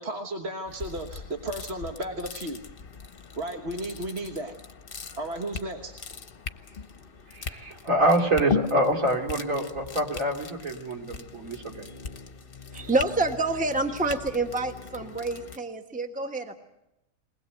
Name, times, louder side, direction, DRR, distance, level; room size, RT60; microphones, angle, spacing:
voice 1, 0.0-2.6 3.4-4.5 5.2-5.9, right 1 dB, 50° right, 3 dB, 1.5 m, -34 dB
sound 1, 0.7-15.6, left 6 dB, 40° left, 1.1 m, -39 dB
voice 2, 7.3-11.9, right 1 dB, 65° right, 1 dB, 3.4 m, -26 dB
voice 3, 12.7-16.6, right 3 dB, 5° right, 5 dB, 1.2 m, -27 dB
21.5 x 20.0 x 8.1 m, 0.89 s
omnidirectional pair, 1.5 m